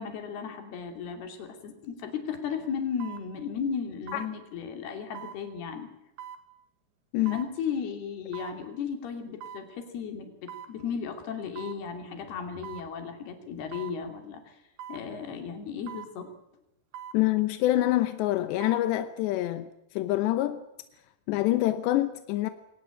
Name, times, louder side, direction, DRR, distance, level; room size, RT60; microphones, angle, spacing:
voice 1, 0.0-5.9 7.3-14.6 14.9-16.3, left 6 dB, 70° left, 4.7 m, -35 dB
sound 1, 1.9-2.0 3.0-3.3 4.1-4.3 5.2-5.4 6.2-6.4 7.3-7.5 8.3-8.6 9.4-9.7 10.5-10.7 11.6-11.8 12.6-12.9 13.7-14.0 14.8-15.1 15.9-16.1 16.9-17.2 18.4-18.9 19.3-19.4, right 9 dB, 90° right, 4.1 m, -42 dB
voice 2, 17.1-19.7 19.9-20.6 21.3-22.5, left 15 dB, 90° left, 3.2 m, -26 dB
22.5 x 18.5 x 9.0 m
omnidirectional pair, 4.8 m